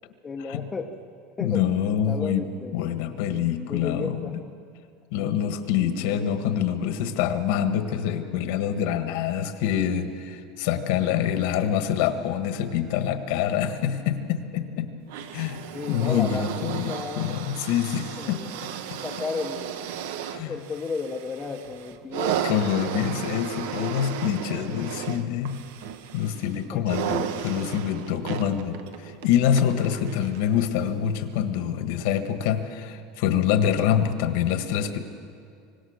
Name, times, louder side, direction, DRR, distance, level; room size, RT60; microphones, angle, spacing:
voice 1, 0.2-1.0 1.4-3.0 3.7-4.5 6.1-6.4 15.7-17.3 18.2-18.8 19.0-19.8 20.5-22.8 26.7-27.3, left 4 dB, 15° left, 4 dB, 0.8 m, -34 dB
voice 2, 1.4-2.5 2.7-4.3 5.1-14.9 15.3-15.6 15.8-18.4 18.9-19.0 20.3-20.5 22.4-25.6 26.1-35.0, left 9 dB, 60° left, 8 dB, 1.5 m, -26 dB
sound 1, 15.1-30.5 31.4-31.5, right 9 dB, 75° right, 1.3 m, -34 dB
25.0 x 18.0 x 6.5 m, 2.4 s
supercardioid pair, 165°, 0 cm